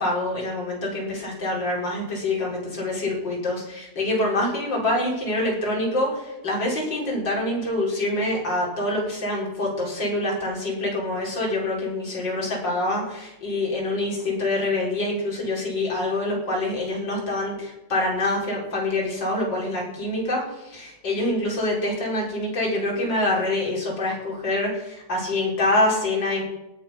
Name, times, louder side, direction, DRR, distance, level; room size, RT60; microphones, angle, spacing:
voice 1, 0.0-26.4, left 1 dB, 35° left, -3 dB, 5.4 m, -26 dB
18.0 x 9.2 x 5.8 m, 0.98 s
omnidirectional pair, 3.3 m